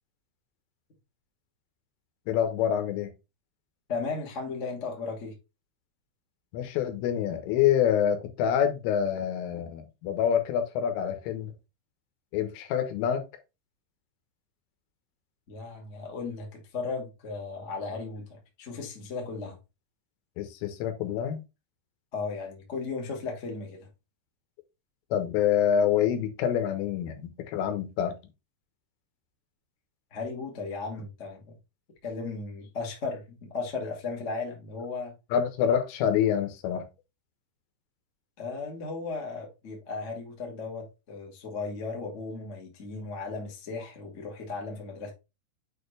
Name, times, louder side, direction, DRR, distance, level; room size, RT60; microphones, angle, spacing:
voice 1, 2.3-3.1 6.5-11.5 12.3-13.3 20.4-21.4 25.1-28.2 35.3-36.9, left 9 dB, 90° left, 3.8 m, -26 dB
voice 2, 3.9-5.3 15.5-19.6 22.1-23.9 30.1-31.5 32.0-35.1 38.4-45.1, left 4 dB, 70° left, 0.6 m, -36 dB
7.8 x 4.5 x 3.3 m
omnidirectional pair, 5.5 m